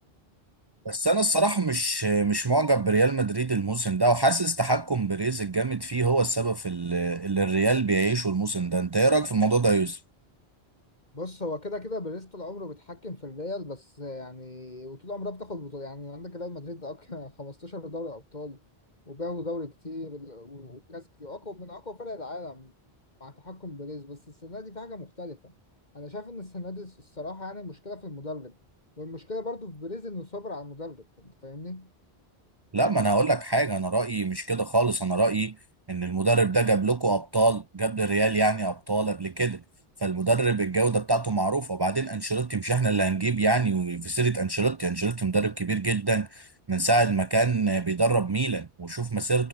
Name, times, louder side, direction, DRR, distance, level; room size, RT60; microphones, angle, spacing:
voice 1, 0.9-10.0 32.7-35.6 35.9-39.6 40.0-49.5, right 3 dB, 40° right, 0.3 m, -25 dB
voice 2, 11.1-18.6 19.1-22.7 23.2-25.5 25.9-28.6 29.0-31.9, left 2 dB, 40° left, 3.6 m, -38 dB
omnidirectional pair, 1.1 m